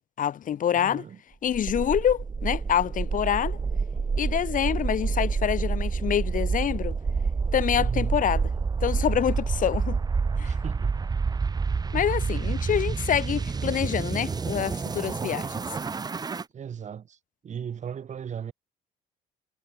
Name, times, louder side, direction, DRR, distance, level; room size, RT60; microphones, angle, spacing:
voice 1, 0.2-1.0 1.4-3.6 4.2-7.0 7.5-8.4 8.8-10.0 10.4-10.5 11.9-15.6, left 9 dB, 50° left, 4.1 m, -26 dB
voice 2, 0.7-1.2 4.1-4.3 7.7-8.2 10.4-11.0 12.3-12.7 16.3-18.5, right 8 dB, 45° right, 6.4 m, -38 dB
sound 1, 1.5-16.4, right 5 dB, 25° right, 1.0 m, -28 dB
cardioid pair, 110°, 17 cm